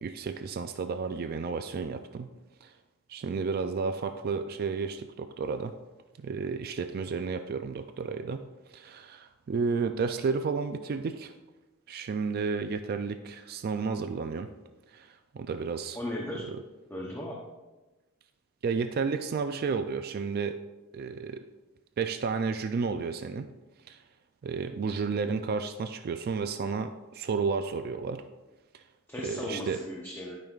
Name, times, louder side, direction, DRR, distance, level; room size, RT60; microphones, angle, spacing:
voice 1, 0.0-2.3 2.6-2.7 3.1-5.7 6.2-8.5 8.7-11.3 11.9-14.5 14.9-16.0 16.5-16.6 18.6-20.6 20.9-21.4 22.0-23.5 23.9-24.0 24.4-28.2 28.7-28.8 29.2-29.8, right 5 dB, 45° right, 8 dB, 0.3 m, -32 dB
voice 2, 15.9-16.4 16.9-17.4 29.1-30.4, left 1 dB, 10° left, -2 dB, 0.7 m, -36 dB
12.0 x 5.3 x 2.4 m, 1.2 s
head